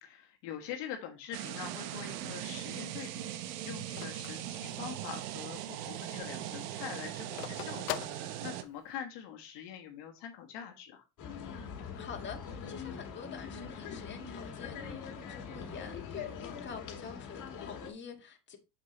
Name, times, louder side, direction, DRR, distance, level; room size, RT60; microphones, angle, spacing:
voice 1, 0.0-3.3 3.6-11.0 16.5-16.7, left 9 dB, 60° left, 1.4 m, -44 dB
sound 1, 1.3-8.6, right 12 dB, 80° right, 0.9 m, -40 dB
Telephone, 1.9-5.3 5.7-5.8 6.1-9.0, left 16 dB, 75° left, 0.7 m, -43 dB
sound 2, 11.2-17.9, left 6 dB, 40° left, 1.7 m, -43 dB
voice 2, 11.8-18.6, left 6 dB, 25° left, 1.6 m, -47 dB
6.6 x 6.2 x 2.9 m
supercardioid pair, 105°, 47 cm